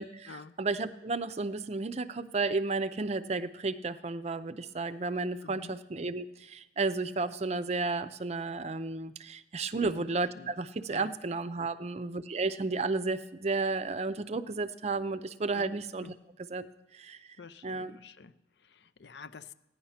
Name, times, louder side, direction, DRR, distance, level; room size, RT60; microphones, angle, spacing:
voice 1, 0.0-16.1 16.5-16.7 16.9-17.2 17.6-18.0, right 3 dB, 35° right, 14 dB, 0.5 m, -33 dB
voice 2, 5.4-5.7 9.8-10.0 10.3-10.5 10.9-11.1 15.5-15.7 16.0-16.2 17.4-19.5, left 5 dB, 75° left, 13 dB, 0.6 m, -48 dB
15.5 x 10.0 x 5.7 m, 0.94 s
head